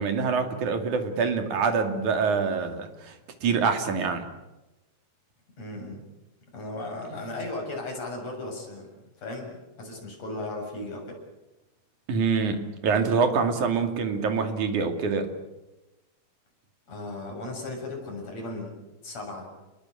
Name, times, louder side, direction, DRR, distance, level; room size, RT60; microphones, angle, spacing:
voice 1, 0.0-3.2 3.4-4.3 12.1-15.3, right 5 dB, 70° right, 6 dB, 4.0 m, -25 dB
voice 2, 5.6-6.0 6.5-8.9 9.2-11.2 16.9-18.7 19.0-19.5, left 2 dB, 55° left, 1 dB, 8.5 m, -36 dB
29.5 x 21.0 x 8.6 m, 1.0 s
omnidirectional pair, 3.6 m